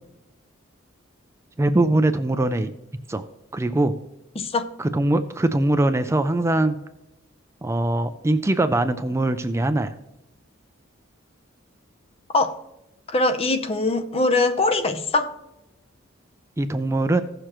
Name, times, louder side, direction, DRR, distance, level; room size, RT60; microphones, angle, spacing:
voice 1, 1.6-2.7 3.1-3.2 3.5-3.9 4.8-6.8 7.6-9.9 16.6-17.2, right 2 dB, 15° right, 0.4 m, -22 dB
voice 2, 4.4-4.7 12.3-12.6 13.1-15.4, left 2 dB, 30° left, 0.6 m, -22 dB
16.0 x 6.6 x 3.0 m
head